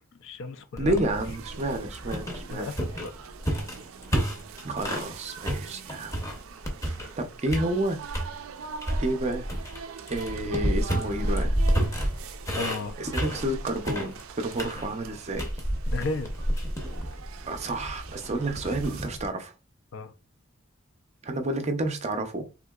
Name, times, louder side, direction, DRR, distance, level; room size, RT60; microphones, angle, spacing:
voice 1, 0.2-1.1 2.4-3.1 12.6-13.0 15.9-16.3 19.9-20.1, left 3 dB, 65° left, 0.5 m, -34 dB
sound 1, 0.8-5.1 5.4-7.2 7.5-8.3 8.8-19.3, equal, 15° left, 0.7 m, -30 dB
voice 2, 0.8-2.7 4.6-6.1 7.2-8.0 9.0-9.5 10.1-11.6 13.0-15.5 17.5-19.5 21.2-22.5, right 1 dB, 35° right, 0.5 m, -30 dB
sound 2, 1.0-19.1, right 6 dB, 80° right, 0.4 m, -44 dB
3.7 x 2.7 x 2.3 m
head